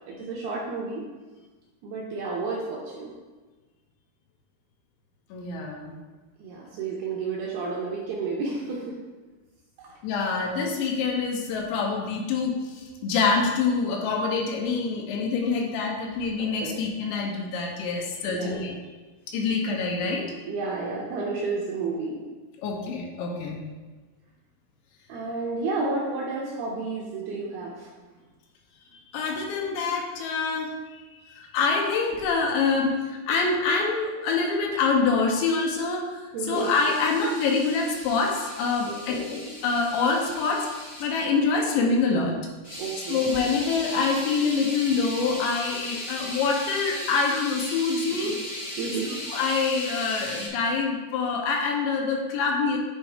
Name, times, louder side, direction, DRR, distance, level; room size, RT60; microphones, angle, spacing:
voice 1, 0.1-1.0 1.8-3.1 6.4-8.9 9.8-10.0 16.4-16.8 18.3-18.5 20.4-22.2 25.1-27.9 36.3-36.7 38.9-39.3 42.8-43.2 48.8-49.1, right 3 dB, 80° right, -4 dB, 2.3 m, -31 dB
voice 2, 5.3-6.0 10.0-18.8 19.3-20.3 22.6-23.6 29.1-42.3 43.1-48.4 49.3-52.8, left 4 dB, 80° left, 0 dB, 3.0 m, -26 dB
sound 1, 36.5-41.1 42.6-50.5, left 1 dB, 50° left, 0.7 m, -37 dB
9.9 x 4.1 x 3.5 m, 1.3 s
omnidirectional pair, 5.3 m